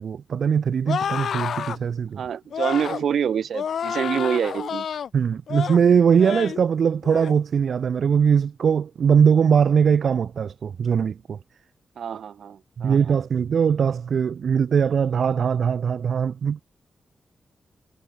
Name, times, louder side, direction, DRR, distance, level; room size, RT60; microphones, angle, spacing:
voice 1, 0.0-2.2 5.1-11.4 12.8-16.6, right 7 dB, 60° right, 0.3 m, -21 dB
sound 1, 0.9-1.8 2.5-3.0 3.5-5.1 5.5-5.8 6.2-6.6 7.0-7.3, left 8 dB, 70° left, 2.1 m, -29 dB
voice 2, 2.2-4.9 12.0-13.2, right 8 dB, 75° right, 2.5 m, -26 dB
wide cardioid pair, 150°, 0 cm